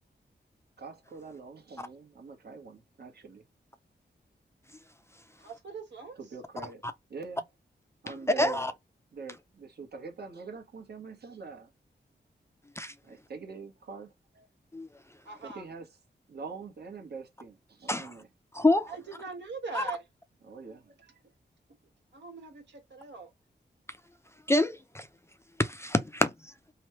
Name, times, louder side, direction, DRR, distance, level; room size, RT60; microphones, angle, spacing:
voice 1, 0.8-3.4 6.2-6.8 7.1-7.4 8.0-8.7 9.1-11.7 13.0-14.5 15.4-15.9 16.3-18.3 20.4-21.2, right 4 dB, 65° right, 1.1 m, -44 dB
voice 2, 5.4-6.2 15.2-15.6 18.9-20.0 22.1-23.3, right 4 dB, 80° right, 1.5 m, -41 dB
voice 3, 8.4-8.7 12.8-12.9 14.7-14.9 17.9-18.1 18.5-18.9 19.7-19.8 24.5-25.1 25.6-26.3, left 1 dB, 15° left, 0.4 m, -26 dB
3.1 x 2.2 x 3.0 m
wide cardioid pair, 80°, 18 cm